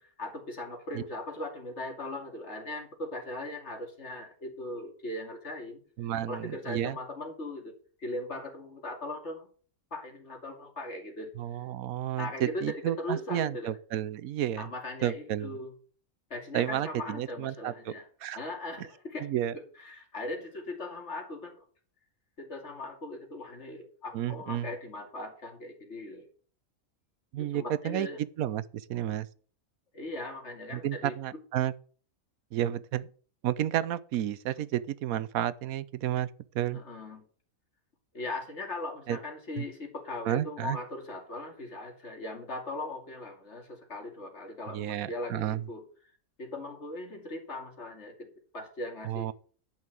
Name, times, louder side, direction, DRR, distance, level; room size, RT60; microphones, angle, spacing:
voice 1, 0.2-5.8 6.3-7.7 8.0-9.5 9.9-11.3 12.2-13.7 14.6-15.7 16.3-18.1 18.3-19.3 19.8-21.6 22.4-26.2 27.4-28.2 29.9-31.2 36.7-37.3 38.1-45.8 46.4-49.3, left 2 dB, 55° left, 2.8 m, -39 dB
voice 2, 6.0-7.0 11.4-14.7 15.0-15.5 16.5-17.9 18.2-18.4 19.2-19.5 24.1-24.7 27.3-28.1 28.4-29.3 30.7-31.7 32.5-33.1 33.4-36.3 36.5-36.8 39.1-39.2 39.6-39.7 40.3-40.8 44.7-45.7 49.0-49.3, right 12 dB, 85° right, 1.1 m, -31 dB
11.0 x 5.8 x 7.6 m
omnidirectional pair, 1.5 m